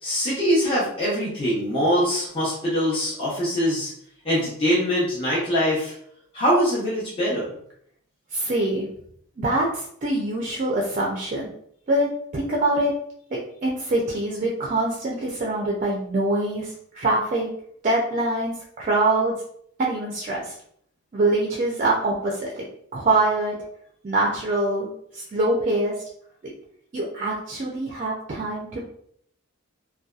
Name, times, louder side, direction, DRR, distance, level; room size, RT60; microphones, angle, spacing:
voice 1, 0.0-3.9 4.2-5.9 6.3-7.5, equal, 25° left, -9 dB, 0.7 m, -23 dB
voice 2, 8.3-8.9 9.4-11.5 11.9-12.9 13.3-17.5 17.8-19.4 19.8-20.6 21.1-22.7 22.9-23.6 24.0-25.9 26.9-28.8, right 2 dB, 35° right, -2 dB, 0.4 m, -24 dB
2.6 x 2.2 x 2.3 m, 0.68 s
head